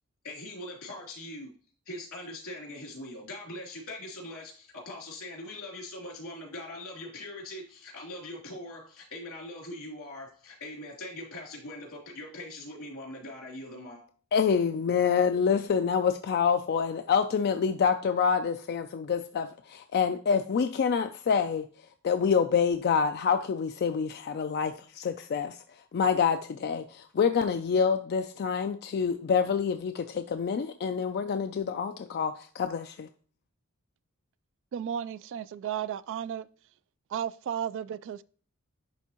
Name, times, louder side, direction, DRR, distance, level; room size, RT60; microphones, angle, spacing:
voice 1, 0.2-1.5 1.9-14.0, left 1 dB, 90° left, 3.0 m, -42 dB
voice 2, 14.3-21.7 22.0-25.6 25.9-33.1, left 6 dB, 50° left, 0.4 m, -27 dB
voice 3, 34.7-36.5 37.1-38.2, right 9 dB, 60° right, 0.3 m, -34 dB
10.5 x 3.5 x 2.9 m
head